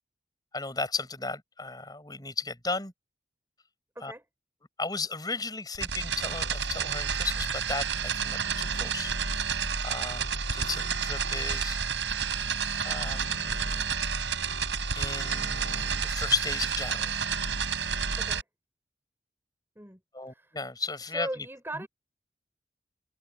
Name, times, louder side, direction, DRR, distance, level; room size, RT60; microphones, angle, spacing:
voice 1, 0.5-2.9 4.0-4.1 4.8-9.1 9.8-11.8 12.8-13.8 14.9-17.2 20.1-21.5 21.7-21.9, left 4 dB, 20° left, 6.6 m, -35 dB
sound 1, 5.7-18.4, right 6 dB, 90° right, 6.7 m, -30 dB
voice 2, 21.1-21.9, right 1 dB, 10° right, 6.7 m, -38 dB
head